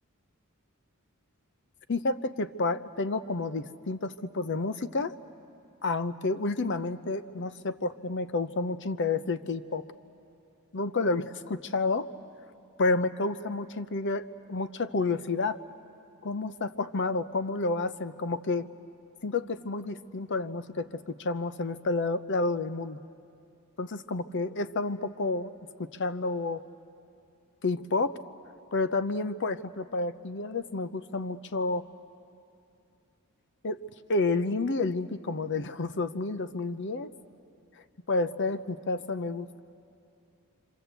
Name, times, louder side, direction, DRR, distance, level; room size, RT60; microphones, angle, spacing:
voice 1, 1.9-5.2 5.8-9.9 10.7-12.1 12.8-15.6 16.2-18.7 19.2-23.0 23.8-25.5 25.8-26.6 27.6-28.2 28.7-31.9 33.6-33.8 34.1-37.1 38.1-39.6, left 3 dB, 55° left, 13 dB, 0.7 m, -30 dB
28.0 x 25.5 x 8.2 m, 2.5 s
head